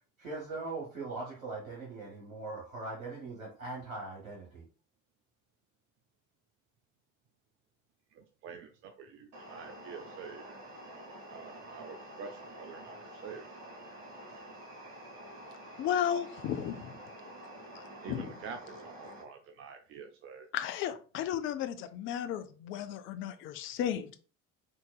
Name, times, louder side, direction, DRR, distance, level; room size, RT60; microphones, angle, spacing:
voice 1, 0.2-4.6, right 3 dB, 80° right, -3 dB, 1.0 m, -40 dB
voice 2, 8.1-10.6 11.3-13.8 14.3-14.6 18.0-20.5, right 5 dB, 35° right, 6 dB, 0.4 m, -47 dB
sound 1, 9.3-19.2, right 1 dB, 60° right, 1.2 m, -48 dB
voice 3, 15.8-16.9 17.7-18.3 20.5-24.2, left 10 dB, 35° left, 10 dB, 0.4 m, -34 dB
3.7 x 2.6 x 2.2 m, 0.38 s
figure-of-eight pair, 60°, 39 cm